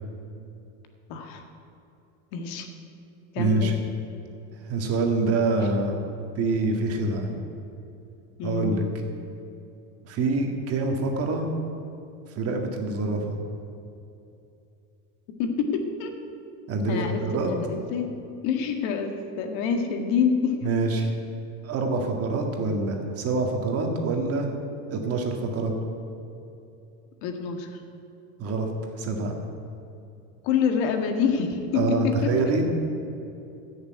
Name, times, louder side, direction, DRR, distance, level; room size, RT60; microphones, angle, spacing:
voice 1, 1.1-1.4 2.3-2.7 3.3-3.8 8.4-8.9 15.4-16.1 16.9-18.1 18.4-20.6 27.2-27.8 30.4-32.0 32.2-32.3, left 6 dB, 65° left, 5 dB, 1.8 m, -27 dB
voice 2, 3.4-3.8 4.6-6.0 6.4-7.3 8.4-8.9 10.0-11.5 12.4-13.4 16.7-17.5 20.6-21.1 21.6-24.5 24.9-25.7 28.4-28.7 29.0-29.3 31.7-32.6, right 3 dB, 40° right, 3 dB, 1.9 m, -25 dB
14.0 x 6.7 x 9.3 m, 2.7 s
cardioid pair, 150°, 36 cm